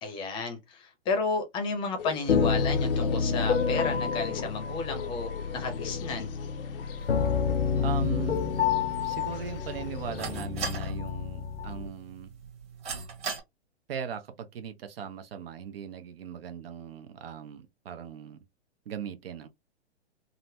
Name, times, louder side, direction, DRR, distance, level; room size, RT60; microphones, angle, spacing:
voice 1, 0.0-6.3, left 3 dB, 15° left, 0.7 m, -32 dB
sound 1, 2.0-10.4, left 8 dB, 55° left, 0.5 m, -43 dB
sound 2, 2.3-11.9, left 6 dB, 85° left, 0.8 m, -29 dB
sound 3, 7.0-13.4, right 5 dB, 20° right, 1.1 m, -41 dB
voice 2, 7.8-8.3 9.0-12.3 13.9-18.4 18.9-19.5, right 8 dB, 60° right, 0.7 m, -39 dB
3.9 x 2.1 x 2.7 m
hypercardioid pair, 150°, 34 cm